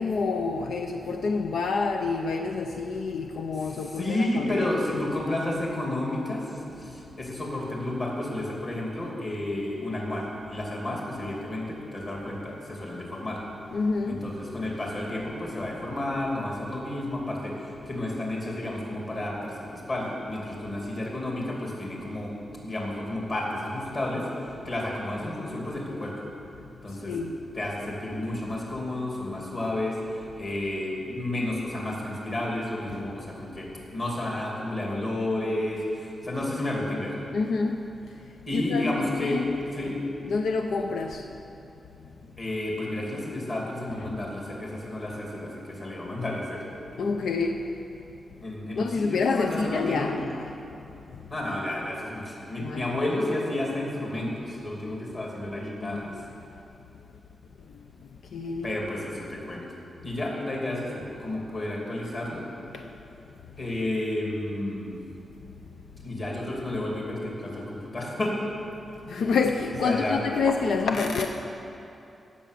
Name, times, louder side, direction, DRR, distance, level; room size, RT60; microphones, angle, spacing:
voice 1, 0.0-4.7 13.7-14.3 26.9-27.4 37.3-39.6 40.2-41.3 44.0-44.2 47.0-47.7 48.8-50.5 51.1-51.2 52.6-52.8 55.8-56.3 57.7-57.8 58.3-58.8 62.7-62.9 69.0-71.3, left 4 dB, 80° left, 4 dB, 0.6 m, -28 dB
voice 2, 3.7-13.4 14.1-22.3 22.6-26.2 26.8-27.2 27.5-30.0 30.3-33.7 33.9-37.1 38.5-39.4 39.7-40.0 42.4-46.6 48.4-50.1 51.3-56.1 58.6-59.7 60.0-62.5 63.6-65.0 66.0-68.4 69.8-70.2, left 1 dB, 35° left, -3 dB, 2.8 m, -31 dB
17.0 x 7.4 x 6.8 m, 2.8 s
wide cardioid pair, 170°, 0 cm